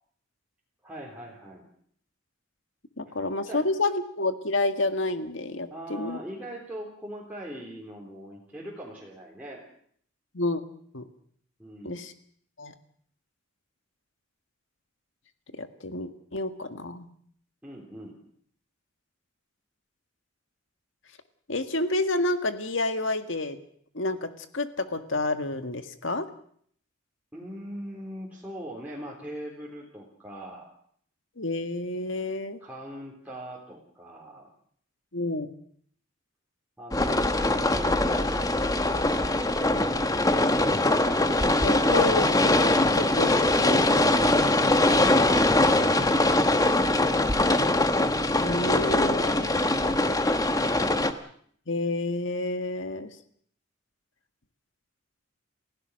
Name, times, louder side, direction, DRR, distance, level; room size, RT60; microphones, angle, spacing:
voice 1, 0.8-1.7 3.5-3.7 5.7-9.6 11.6-12.0 17.6-18.2 27.3-30.7 32.6-34.5 36.8-38.4 38.8-39.8, right 1 dB, 10° right, -5 dB, 3.8 m, -41 dB
voice 2, 3.0-6.2 10.3-10.6 10.9-11.1 11.8-12.1 12.6-12.7 15.6-17.1 21.5-23.6 23.9-26.3 31.4-32.6 35.1-35.5 41.6-44.0 48.3-49.6 51.7-53.1, left 2 dB, 70° left, 8 dB, 1.9 m, -29 dB
Ambiance Rain Inside Car Roof Loop Stereo, 36.9-51.1, left 2 dB, 20° left, 1.3 m, -22 dB
29.5 x 16.0 x 6.5 m, 0.62 s
head